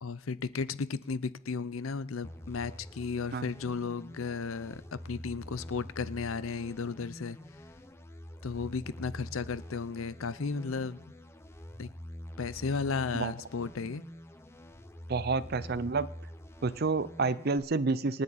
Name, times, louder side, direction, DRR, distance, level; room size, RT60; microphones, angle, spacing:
voice 1, 0.0-7.4 8.4-11.0 11.8-11.9 12.4-14.0, left 4 dB, 80° left, 0.6 m, -34 dB
sound 1, 2.2-17.6, equal, 10° left, 0.7 m, -46 dB
voice 2, 15.1-16.1 16.6-18.2, right 3 dB, 50° right, 0.6 m, -29 dB
26.5 x 9.5 x 4.1 m
head